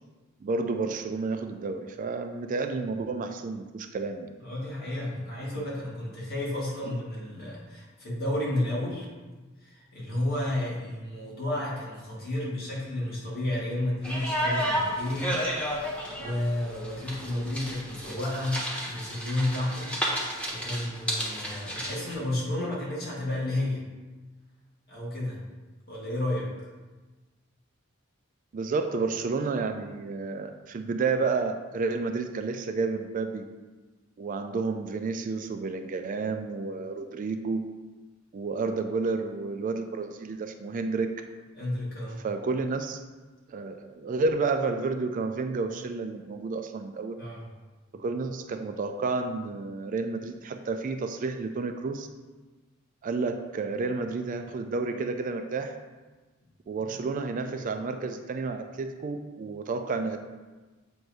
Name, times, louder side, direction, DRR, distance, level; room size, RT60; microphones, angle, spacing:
voice 1, 0.4-4.4 5.4-5.7 6.9-7.0 28.5-33.5 34.2-37.6 38.3-41.1 42.2-43.0 43.5-47.2 47.9-52.1 53.0-55.8 56.7-60.2, right 4 dB, 40° right, 7 dB, 0.3 m, -31 dB
voice 2, 4.4-9.1 9.6-15.4 16.2-20.0 20.5-23.8 24.9-25.4 25.9-26.5 41.5-42.2 47.2-47.4, left 1 dB, 50° left, -5 dB, 1.7 m, -31 dB
sound 1, 14.0-22.1, equal, 5° left, 0.9 m, -32 dB
7.6 x 2.7 x 4.7 m, 1.3 s
head